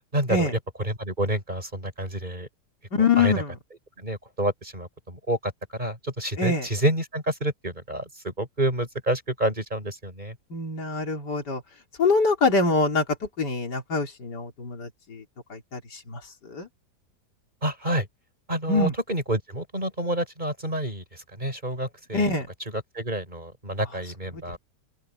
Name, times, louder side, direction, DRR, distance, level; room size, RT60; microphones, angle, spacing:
voice 1, 0.1-0.5 0.8-2.5 3.2-3.3 4.0-10.4 17.6-18.1 18.5-22.3 22.7-24.6, right 1 dB, 25° right, 6.6 m, -28 dB
voice 2, 2.9-3.5 6.4-6.7 10.5-11.6 12.0-15.2 15.5-16.2 16.5-16.7 18.7-18.9 22.1-22.5 24.3-24.4, left 3 dB, 75° left, 4.1 m, -24 dB
open air
omnidirectional pair, 1.8 m